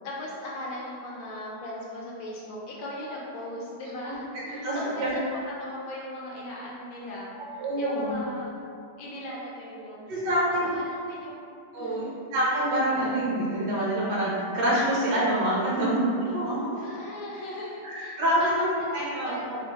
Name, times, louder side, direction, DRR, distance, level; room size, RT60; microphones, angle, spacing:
voice 1, 0.0-5.3 5.6-8.5 9.0-11.4 11.8-12.2 16.7-18.1 18.4-19.7, left 1 dB, 75° left, -5 dB, 1.2 m, -38 dB
voice 2, 4.0-5.1 7.6-8.1 10.1-10.7 11.7-12.0 12.3-16.8 17.8-19.7, right 1 dB, 70° right, -6 dB, 1.3 m, -26 dB
4.9 x 2.0 x 2.9 m, 2.5 s
omnidirectional pair, 2.2 m